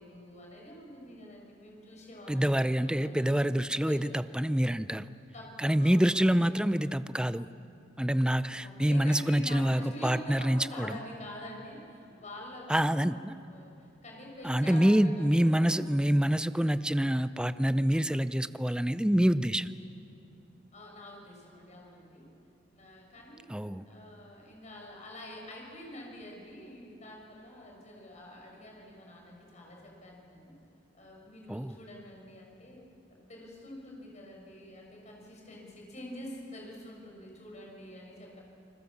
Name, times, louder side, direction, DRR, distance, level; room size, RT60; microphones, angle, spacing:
voice 1, 0.0-3.4 3.9-4.0 5.3-6.8 8.6-16.0 20.7-22.3 22.7-23.5 23.9-30.5 30.9-32.8 33.1-38.4, left 1 dB, 40° left, -1 dB, 6.0 m, -46 dB
voice 2, 2.3-5.1 5.6-7.5 8.0-11.0 12.7-13.3 14.4-19.7 23.5-23.9 31.5-31.8, equal, 5° right, 13 dB, 0.5 m, -26 dB
28.0 x 21.0 x 7.2 m, 2.7 s
head